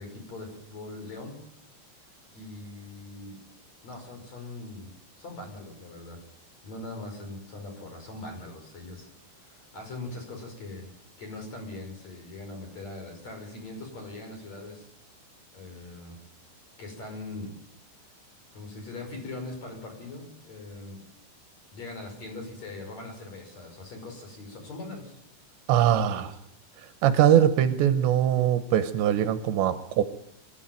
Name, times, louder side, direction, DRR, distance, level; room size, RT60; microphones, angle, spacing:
voice 1, 0.0-1.4 2.3-3.4 3.8-4.9 5.2-6.2 6.6-9.1 9.3-10.9 11.2-14.9 15.5-16.2 16.8-17.5 18.5-21.0 21.7-25.2 25.9-26.3, left 2 dB, 35° left, 3 dB, 6.4 m, -41 dB
voice 2, 25.7-26.3 27.0-30.0, right 10 dB, 75° right, 10 dB, 3.1 m, -22 dB
23.5 x 13.5 x 9.1 m, 0.71 s
omnidirectional pair, 5.4 m